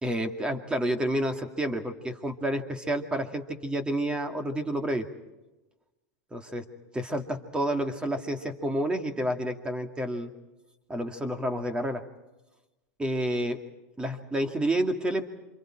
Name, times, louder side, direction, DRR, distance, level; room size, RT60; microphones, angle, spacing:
voice 1, 0.0-5.1 6.3-6.6 6.9-10.3 10.9-12.0 13.0-13.6 14.0-15.2, right 1 dB, 10° right, 5 dB, 2.3 m, -29 dB
28.5 x 26.5 x 4.5 m, 1.1 s
supercardioid pair, 135°, 9 cm